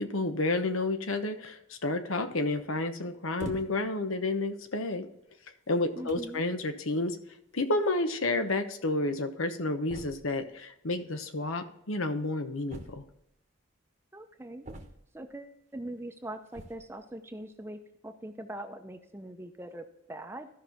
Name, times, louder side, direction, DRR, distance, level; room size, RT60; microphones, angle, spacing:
voice 1, 0.0-5.1 5.7-7.2 7.5-13.0, left 2 dB, 90° left, 8 dB, 1.0 m, -30 dB
sound 1, 3.4-4.0 4.8-4.9 5.7-5.8 6.1-6.4 7.6-7.7 7.9-8.0 8.2-8.3 9.9-10.4 12.7-13.4 14.6-15.3 16.5-16.9, right 1 dB, 35° right, 1.0 m, -44 dB
voice 2, 6.0-6.4 14.1-14.7 15.1-20.5, right 1 dB, 10° right, 6 dB, 0.6 m, -42 dB
14.0 x 5.6 x 3.5 m, 0.81 s
head